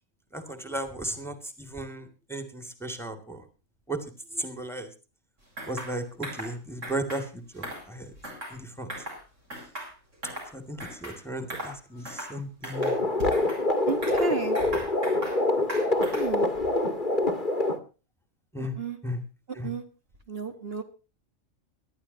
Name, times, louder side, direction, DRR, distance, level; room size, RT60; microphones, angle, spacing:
voice 1, 0.3-3.4 3.9-4.0 4.3-4.9 5.7-8.1 8.5-8.9 10.5-13.0 18.5-18.8 19.0-19.2 19.6-19.7, right 1 dB, ahead, 8 dB, 2.2 m, -35 dB
sound 1, 5.6-5.9 6.2-6.5 6.8-7.2 7.6-8.6 8.9-9.2 9.5-10.5 10.8-11.2 11.5-11.8 12.1-12.4 12.6-13.6 14.0-15.4 15.7-16.4, equal, 70° right, 7.5 m, -38 dB
sound 2, 12.7-17.8, left 2 dB, 40° left, 1.8 m, -25 dB
voice 2, 13.9-14.7 16.1-16.5 18.6-19.0 19.6-19.8 20.3-20.8, right 4 dB, 50° right, 5 dB, 1.8 m, -32 dB
24.5 x 12.0 x 2.8 m, 0.33 s
omnidirectional pair, 1.3 m